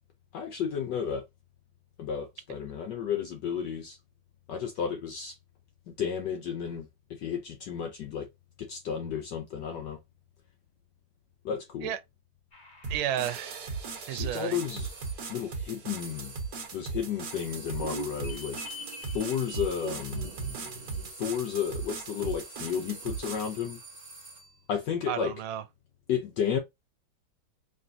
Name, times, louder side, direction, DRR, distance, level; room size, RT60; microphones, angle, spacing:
voice 1, 0.3-1.2 2.0-4.0 4.5-5.4 6.0-8.3 8.6-10.0 11.4-11.9 14.1-14.9 15.3-16.3 16.7-18.6 19.1-20.3 21.2-23.8 24.7-25.3 26.1-26.6, left 8 dB, 70° left, 1.1 m, -32 dB
sound 1, 12.5-14.1 17.5-21.1, right 2 dB, 25° left, 1.2 m, -44 dB
sound 2, 12.8-23.6, right 4 dB, 55° right, 1.6 m, -38 dB
voice 2, 12.9-13.7 14.1-14.6 25.1-25.6, right 10 dB, 85° right, 1.5 m, -32 dB
sound 3, 14.7-15.2 16.0-16.6 17.2-24.6, right 3 dB, 35° right, 0.7 m, -48 dB
4.2 x 3.2 x 2.6 m
omnidirectional pair, 2.2 m